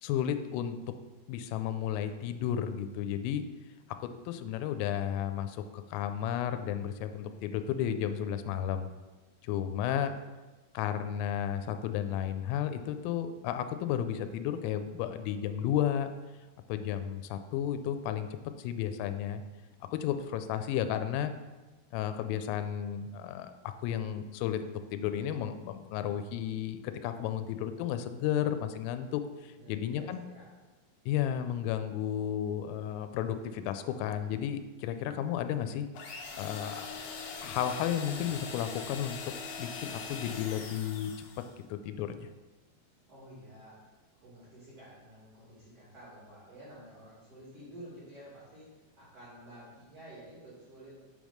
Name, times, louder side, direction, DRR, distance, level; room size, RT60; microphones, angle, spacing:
voice 1, 0.0-0.8 1.3-3.4 4.0-5.6 5.9-8.9 9.4-10.1 10.7-16.1 16.7-18.3 18.6-19.4 19.9-21.3 21.9-30.2 31.1-35.9 36.4-36.9 37.4-39.2 39.6-41.1 41.7-42.3, left 10 dB, 90° left, 9 dB, 3.2 m, -33 dB
voice 2, 9.8-10.2 29.5-30.5 43.1-43.9 44.2-51.0, right 1 dB, 70° right, -8 dB, 1.4 m, -51 dB
sound 1, 35.9-41.6, left 4 dB, 75° left, 2.7 m, -42 dB
7.6 x 3.6 x 6.2 m, 1.2 s
omnidirectional pair, 5.7 m